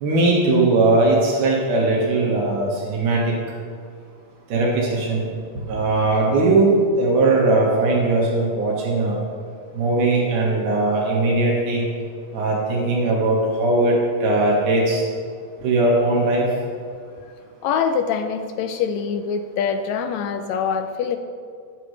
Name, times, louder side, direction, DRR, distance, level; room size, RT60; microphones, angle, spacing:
voice 1, 0.0-3.3 4.5-5.3 5.7-9.2 9.7-11.8 12.3-14.0 14.2-15.0 15.6-16.5, right 2 dB, 85° right, -3 dB, 3.2 m, -19 dB
voice 2, 17.6-21.2, left 6 dB, 80° left, 7 dB, 1.8 m, -24 dB
19.5 x 7.9 x 3.2 m, 2.1 s
omnidirectional pair, 3.5 m